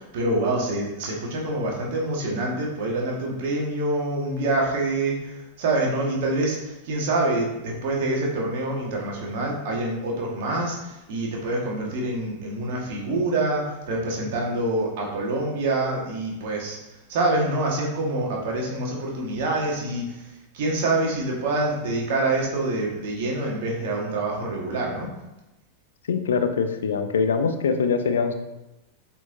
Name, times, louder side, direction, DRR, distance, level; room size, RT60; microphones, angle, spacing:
voice 1, 0.0-16.8 17.1-25.1, right 2 dB, 50° right, -2 dB, 1.8 m, -26 dB
voice 2, 26.1-28.3, left 5 dB, 65° left, 8 dB, 0.6 m, -23 dB
7.9 x 4.5 x 2.8 m, 0.98 s
figure-of-eight pair, 90°, 0 cm